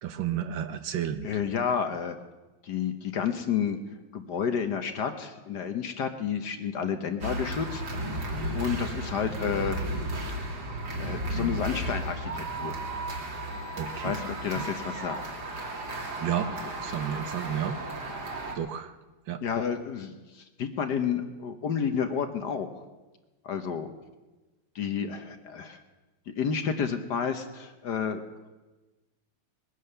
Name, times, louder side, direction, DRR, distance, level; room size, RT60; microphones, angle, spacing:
voice 1, 0.0-1.3 13.8-14.2 14.6-14.7 16.2-16.5 16.8-17.8 18.5-19.0 19.3-19.4, right 9 dB, 70° right, 10 dB, 1.4 m, -31 dB
voice 2, 1.2-2.2 2.6-3.8 4.1-9.8 11.0-12.8 14.0-15.2 17.0-17.2 19.4-22.7 23.4-23.9 24.7-25.8 26.3-28.2, left 7 dB, 60° left, 8 dB, 1.4 m, -31 dB
sound 1, 7.2-18.6, right 1 dB, 50° right, 2.7 m, -34 dB
20.5 x 10.0 x 6.8 m, 1.2 s
omnidirectional pair, 2.4 m